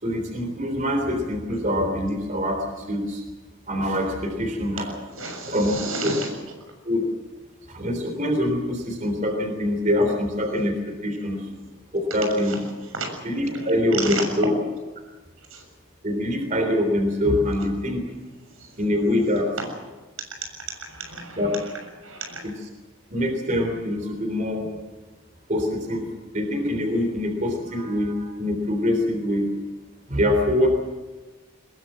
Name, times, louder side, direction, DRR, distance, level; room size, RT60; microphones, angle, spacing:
voice 1, 0.0-3.2 3.7-4.9 5.5-6.1 6.8-7.1 7.7-10.8 11.0-11.5 11.9-12.6 13.2-14.5 16.0-18.0 18.8-19.5 21.3-21.5 22.4-22.5 23.1-24.7 25.5-26.1 26.3-29.5 30.1-30.7, left 1 dB, 35° right, 4 dB, 3.6 m, -24 dB
voice 2, 5.1-6.3 12.4-12.6 12.9-13.1 13.5-13.7 14.0-14.3 15.5-15.6 18.6-18.7 20.2-21.7 22.0-22.4, right 3 dB, 90° right, 4 dB, 6.9 m, -32 dB
22.0 x 21.5 x 7.5 m, 1.2 s
head